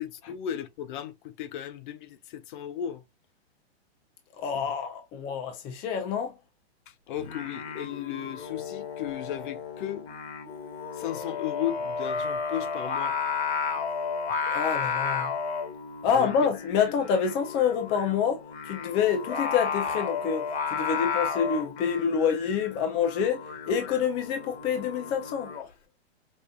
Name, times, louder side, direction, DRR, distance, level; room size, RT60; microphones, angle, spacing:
voice 1, 0.0-3.0 4.5-4.7 6.9-10.1 10.9-13.1 16.1-16.9, left 11 dB, 50° left, 0.7 m, -35 dB
voice 2, 4.4-6.3 14.4-15.3 16.0-20.5 20.7-25.5, left 7 dB, 20° left, 0.4 m, -27 dB
Singing, 7.2-25.7, left 5 dB, 75° left, 1.5 m, -33 dB
5.2 x 2.4 x 2.3 m
hypercardioid pair, 145°, 32 cm